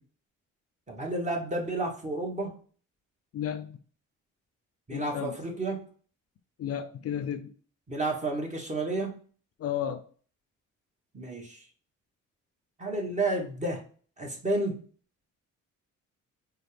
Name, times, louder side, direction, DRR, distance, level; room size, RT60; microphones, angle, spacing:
voice 1, 0.9-2.5 4.9-5.8 7.9-9.2 11.1-11.7 12.8-13.8 14.2-14.8, right 2 dB, 25° right, 1.3 m, -31 dB
voice 2, 3.3-3.8 4.9-5.4 6.6-7.6 9.6-10.0, left 9 dB, 50° left, 0.5 m, -33 dB
4.2 x 2.3 x 3.3 m
cardioid pair, 90°, 30 cm